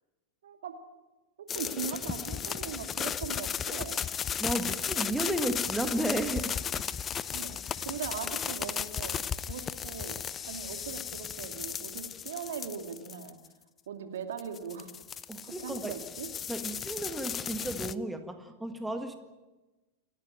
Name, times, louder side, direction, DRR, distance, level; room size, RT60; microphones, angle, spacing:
voice 1, 0.4-0.7 1.4-4.0 7.3-13.4 13.9-15.0 15.4-16.3, right 7 dB, 60° right, 5 dB, 2.6 m, -40 dB
sound 1, 1.5-13.5 14.4-17.9, left 8 dB, 25° left, 0.7 m, -35 dB
voice 2, 4.4-6.5 15.3-16.0 16.5-19.2, right 1 dB, 5° right, 7 dB, 1.8 m, -33 dB
28.5 x 14.0 x 9.2 m, 1.1 s
figure-of-eight pair, 90°, 0 cm